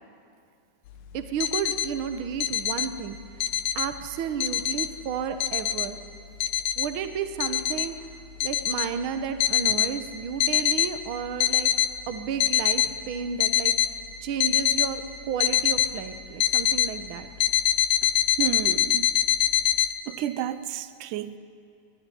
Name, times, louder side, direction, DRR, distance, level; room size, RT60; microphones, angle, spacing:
voice 1, 1.1-3.2 3.7-6.0 6.8-7.9 8.4-11.7 12.1-13.7 14.2-17.3, right 7 dB, 65° right, 8 dB, 1.2 m, -32 dB
sound 1, 1.2-1.9 2.4-2.9 3.2-3.9 4.4-4.9 5.4-5.9 6.4-6.9 7.4-7.9 8.4-8.9 9.4-9.9 10.4-10.9 11.3-11.9 12.4-12.9 13.4-13.9 14.4-14.9 15.4-15.9 16.4-16.9 17.4-19.9, left 11 dB, 85° left, 2.4 m, -23 dB
voice 2, 18.4-19.1 20.1-21.4, right 11 dB, 85° right, 13 dB, 2.3 m, -31 dB
23.0 x 13.5 x 10.0 m, 2.4 s
omnidirectional pair, 3.6 m